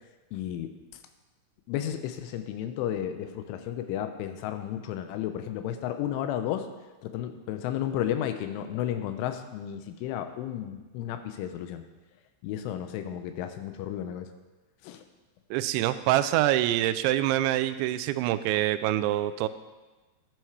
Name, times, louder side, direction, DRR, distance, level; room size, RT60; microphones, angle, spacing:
voice 1, 0.3-0.7 1.7-6.7 7.0-11.8 12.4-14.3 14.8-15.0, left 11 dB, 90° left, 8 dB, 3.3 m, -33 dB
voice 2, 15.5-19.5, right 14 dB, 85° right, 11 dB, 2.8 m, -25 dB
11.5 x 9.1 x 4.7 m, 1.2 s
omnidirectional pair, 5.4 m